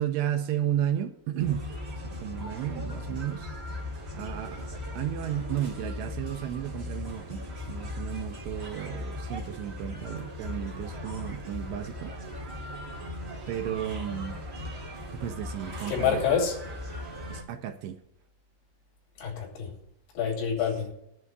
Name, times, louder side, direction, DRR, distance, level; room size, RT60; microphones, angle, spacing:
voice 1, 0.0-1.7 2.0-3.5 4.1-4.7 4.9-7.4 7.7-12.1 13.5-14.4 15.1-16.2 17.3-18.0, right 11 dB, 80° right, 2.6 m, -33 dB
sound 1, 1.4-17.4, left 1 dB, 25° right, 1.7 m, -38 dB
voice 2, 15.9-16.6 19.2-19.7 20.2-21.0, left 7 dB, 85° left, 5.2 m, -27 dB
21.5 x 11.0 x 2.3 m
omnidirectional pair, 5.3 m